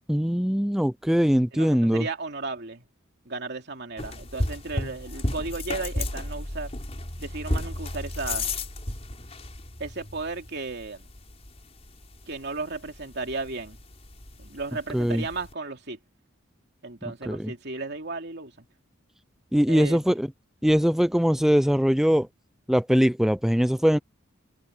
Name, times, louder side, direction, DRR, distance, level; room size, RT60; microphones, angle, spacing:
voice 1, 0.1-2.0 14.9-15.2 17.3-17.5 19.5-20.3 20.6-22.3 22.7-24.0, equal, ahead, 0.4 m, -21 dB
voice 2, 1.5-2.8 3.2-6.7 7.2-8.5 9.8-11.1 12.3-13.8 14.4-16.0 16.8-18.7 19.7-20.0, right 3 dB, 55° right, 2.9 m, -34 dB
sound 1, 4.0-15.5, left 1 dB, 30° left, 4.5 m, -34 dB
head